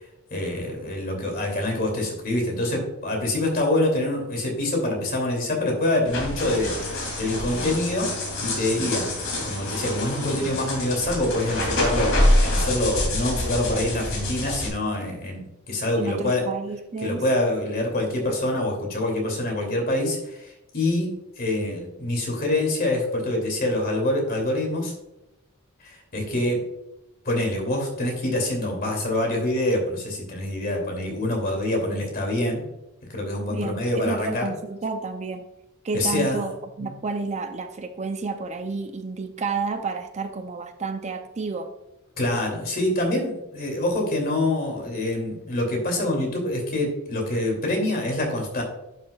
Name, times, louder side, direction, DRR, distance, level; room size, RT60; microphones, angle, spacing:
voice 1, 0.3-9.1 9.4-12.1 12.4-16.4 17.0-24.9 25.8-26.6 27.2-32.6 33.1-34.5 35.9-36.4 36.8-36.9 42.2-48.6, left 1 dB, 45° left, 1 dB, 2.7 m, -25 dB
sound 1, 6.0-14.7, left 1 dB, 65° left, 2.8 m, -26 dB
voice 2, 16.0-17.2 33.5-35.5 35.8-41.7, right 4 dB, 30° right, 7 dB, 0.5 m, -30 dB
11.0 x 6.6 x 2.3 m, 0.91 s
head